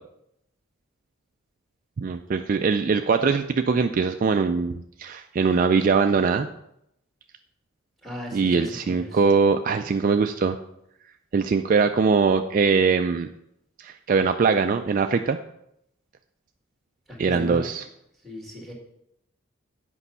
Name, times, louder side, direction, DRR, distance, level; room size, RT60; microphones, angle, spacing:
voice 1, 2.0-6.5 8.3-10.6 11.3-13.3 13.8-15.4 17.2-17.8, right 5 dB, 40° right, 7 dB, 0.3 m, -22 dB
voice 2, 8.0-9.2 17.1-17.6 18.2-18.7, equal, ahead, 0 dB, 1.9 m, -37 dB
8.3 x 5.4 x 5.4 m, 0.78 s
head